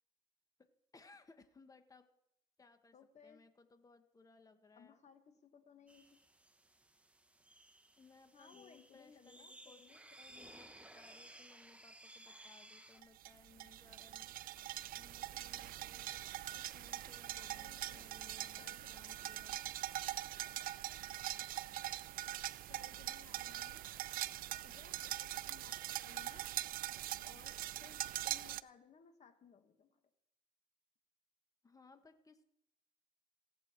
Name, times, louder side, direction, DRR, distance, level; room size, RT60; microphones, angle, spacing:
voice 1, 0.6-2.1 2.6-3.0 3.2-5.0 8.0-14.3 15.0-16.2 16.5-19.6 31.6-32.4, left 3 dB, 20° left, 9 dB, 1.1 m, -63 dB
voice 2, 2.9-3.4 4.8-6.2 8.3-10.0 17.4-18.1 18.6-19.1 22.7-23.9 24.6-26.5 27.2-30.0, left 7 dB, 40° left, 8 dB, 1.4 m, -62 dB
sound 1, 5.9-13.0, right 1 dB, 5° right, 0.8 m, -58 dB
sound 2, 13.0-28.6, right 14 dB, 60° right, 0.4 m, -43 dB
17.0 x 7.6 x 4.4 m, 0.80 s
cardioid pair, 110°, 17 cm